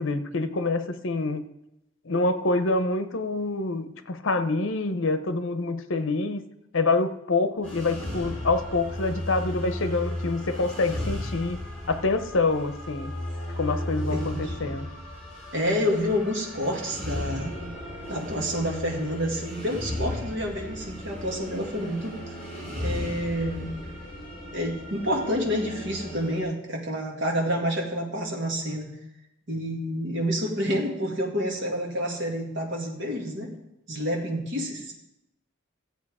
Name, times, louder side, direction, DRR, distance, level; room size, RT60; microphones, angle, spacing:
voice 1, 0.0-1.4 2.0-6.4 6.7-11.6 11.9-13.1 13.6-14.9, left 3 dB, 65° left, 11 dB, 0.8 m, -26 dB
sound 1, 7.6-26.4, left 1 dB, 5° left, 5.1 m, -35 dB
voice 2, 14.1-14.8 15.5-17.5 18.1-22.2 22.8-23.7 24.5-28.9 29.5-33.5 33.9-35.0, equal, 60° right, 0 dB, 2.1 m, -28 dB
13.5 x 8.2 x 4.9 m, 0.88 s
head